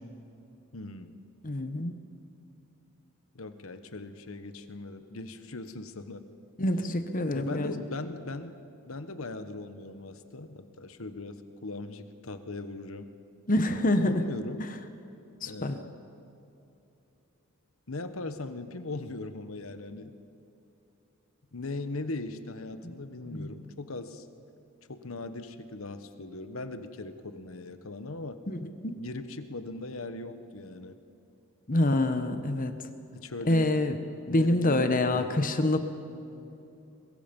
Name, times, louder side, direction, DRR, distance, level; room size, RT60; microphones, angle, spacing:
voice 1, 0.7-1.2 3.3-6.2 7.3-8.6 8.9-13.1 14.0-14.6 15.5-16.0 17.9-20.2 21.5-24.3 24.9-28.4 29.0-31.0 33.1-33.7 34.3-35.5, left 2 dB, 70° left, 10 dB, 1.2 m, -39 dB
voice 2, 1.4-2.0 6.6-7.7 13.5-14.3 14.6-14.7 15.4-15.8 23.3-23.5 28.5-29.0 31.7-32.7 33.4-34.0 34.3-35.8, left 1 dB, 40° left, 8 dB, 1.1 m, -26 dB
22.0 x 22.0 x 5.4 m, 2.8 s
head